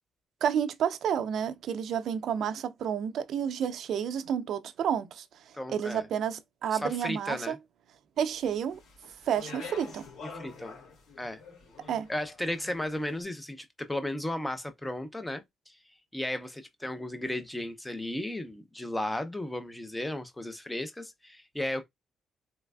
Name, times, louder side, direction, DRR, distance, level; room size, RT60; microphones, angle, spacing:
voice 1, 0.4-5.2 5.7-7.6 8.2-8.8 9.3-10.1 11.9-12.1, right 8 dB, 65° right, 0.4 m, -30 dB
voice 2, 5.5-6.0 6.7-7.6 10.2-10.8 11.2-11.4 12.1-15.7 16.1-21.8, left 1 dB, 10° left, 0.6 m, -35 dB
Speech, 8.7-13.0, left 4 dB, 80° left, 2.1 m, -46 dB
3.3 x 3.2 x 2.2 m
cardioid pair, 135°, 0 cm